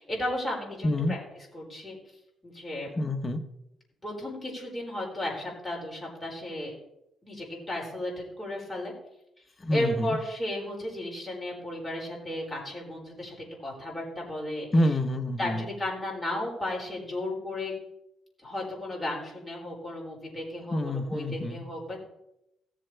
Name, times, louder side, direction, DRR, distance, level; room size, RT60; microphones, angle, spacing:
voice 1, 0.0-2.0 2.4-2.9 4.0-6.7 7.2-8.9 9.7-14.7 15.4-17.7 18.4-22.0, left 1 dB, 10° left, -3 dB, 5.2 m, -34 dB
voice 2, 0.8-1.1 3.0-3.4 9.6-10.2 14.7-15.7 20.7-21.6, left 1 dB, 25° left, 7 dB, 1.2 m, -27 dB
18.0 x 7.5 x 3.5 m, 0.84 s
cardioid pair, 90°, 0 cm